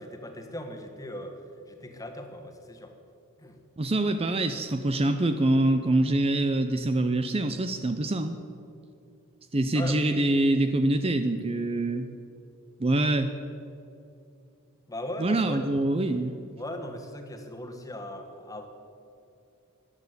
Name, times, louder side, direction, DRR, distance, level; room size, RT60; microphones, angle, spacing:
voice 1, 0.0-1.4 1.7-2.9 3.4-3.6 9.7-10.3 14.9-15.6 16.6-18.7, left 1 dB, 15° left, 4 dB, 1.5 m, -38 dB
voice 2, 3.8-8.4 9.5-12.1 12.8-13.3 15.2-16.3, right 2 dB, 25° right, 8 dB, 0.6 m, -25 dB
15.0 x 10.5 x 8.1 m, 2.7 s
head